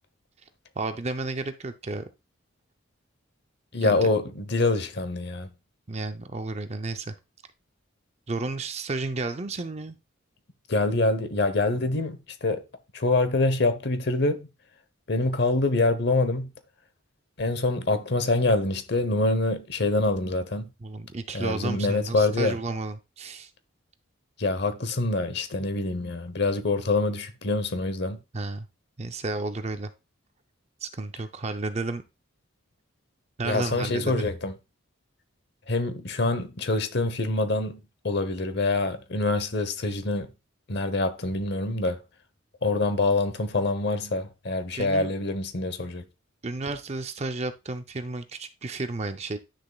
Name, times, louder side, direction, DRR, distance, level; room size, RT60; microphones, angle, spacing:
voice 1, 0.8-2.0 3.8-4.1 5.9-7.1 8.3-10.0 20.8-23.5 28.3-28.7 29.0-29.9 30.8-32.0 33.4-34.3 44.8-45.1 46.4-49.4, right 3 dB, 30° right, 0.5 m, -32 dB
voice 2, 3.7-5.5 10.7-12.6 12.9-14.5 15.1-16.5 17.4-20.7 21.3-22.6 24.4-28.2 33.4-34.5 35.7-40.3 40.7-42.0 42.6-46.0, left 2 dB, 55° left, 0.9 m, -25 dB
10.0 x 6.4 x 2.3 m
head